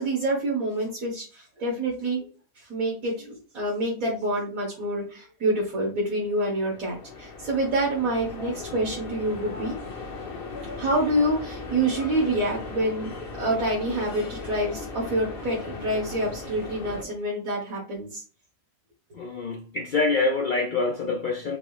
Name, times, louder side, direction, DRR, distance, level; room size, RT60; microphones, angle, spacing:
voice 1, 0.0-2.2 2.6-9.7 10.8-18.2, right 1 dB, 75° right, 2.0 m, -27 dB
sound 1, 6.2-17.0, left 3 dB, 45° left, 1.1 m, -37 dB
voice 2, 19.1-21.6, left 3 dB, 85° left, 0.4 m, -26 dB
5.2 x 2.0 x 4.8 m
omnidirectional pair, 1.4 m